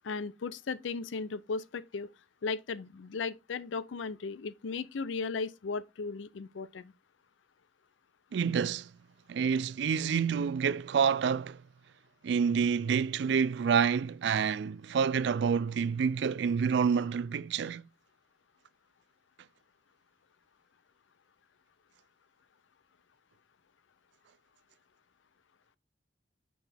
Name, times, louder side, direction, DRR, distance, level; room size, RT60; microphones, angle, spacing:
voice 1, 0.0-2.1 2.4-6.9, left 4 dB, 85° left, 0.5 m, -36 dB
voice 2, 8.3-8.9 9.3-11.6 12.2-17.8, right 6 dB, 65° right, 0.3 m, -28 dB
6.3 x 5.7 x 3.4 m
head